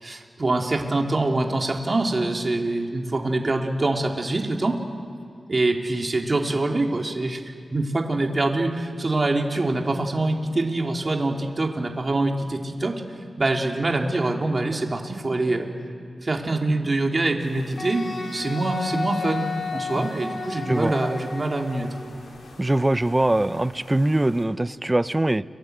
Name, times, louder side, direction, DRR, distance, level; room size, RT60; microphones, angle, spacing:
voice 1, 0.0-4.8 5.5-13.0 13.4-15.7 16.2-21.9, right 2 dB, 35° right, 2 dB, 2.8 m, -25 dB
sound 1, 17.4-24.4, left 2 dB, 85° left, 5.0 m, -48 dB
Wind instrument woodwind instrument, 17.8-22.1, left 4 dB, 55° left, 4.4 m, -32 dB
voice 2, 22.6-25.4, right 1 dB, 20° right, 15 dB, 0.7 m, -22 dB
30.0 x 22.0 x 8.0 m, 2.3 s
wide cardioid pair, 85°, 0 cm